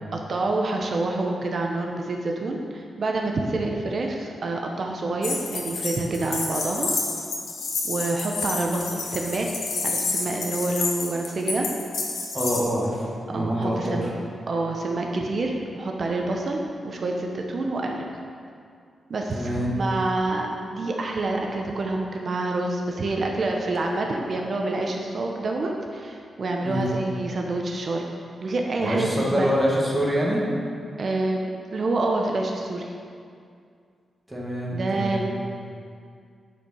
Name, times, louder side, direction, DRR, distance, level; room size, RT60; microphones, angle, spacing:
voice 1, 0.1-6.9 7.2-7.3 7.8-9.5 9.8-11.7 13.3-18.1 19.1-28.0 28.4-29.6 31.0-32.9 34.7-35.2, right 2 dB, 45° right, 1 dB, 0.7 m, -27 dB
sound 1, 5.2-12.6, left 3 dB, 85° left, 1.2 m, -29 dB
voice 2, 12.3-14.1 19.3-19.7 26.6-26.9 28.8-30.4 34.3-35.2, equal, 5° right, -4 dB, 1.5 m, -25 dB
9.1 x 4.5 x 5.5 m, 2.3 s
wide cardioid pair, 145°, 0 cm